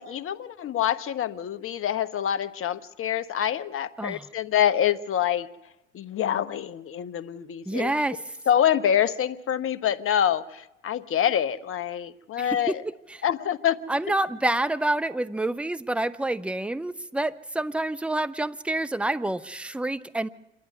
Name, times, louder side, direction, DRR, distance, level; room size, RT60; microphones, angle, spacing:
voice 1, 0.0-5.5 5.9-7.9 8.5-12.8 13.2-13.8, left 10 dB, 35° left, 1.2 m, -26 dB
voice 2, 7.7-8.2 12.4-12.8 13.1-13.2 13.9-20.3, right 2 dB, 5° right, 0.7 m, -28 dB
26.5 x 11.5 x 9.7 m
hypercardioid pair, 80°, 36 cm